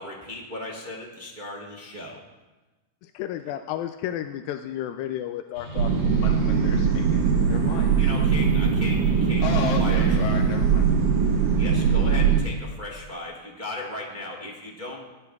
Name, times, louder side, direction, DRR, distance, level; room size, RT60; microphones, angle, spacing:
voice 1, 0.0-2.2 8.0-9.4 9.7-10.1 11.6-15.0, left 2 dB, 55° right, -2 dB, 0.5 m, -36 dB
voice 2, 3.0-5.9, left 11 dB, 90° left, 7 dB, 2.3 m, -32 dB
sound 1, 5.5-12.6, right 2 dB, 25° left, 2.8 m, -34 dB
sound 2, 5.8-12.4, right 6 dB, 75° right, 2.4 m, -21 dB
voice 3, 6.2-8.1 9.4-11.0, left 5 dB, 70° left, 1 dB, 2.2 m, -33 dB
18.0 x 12.0 x 2.4 m, 1.2 s
omnidirectional pair, 4.1 m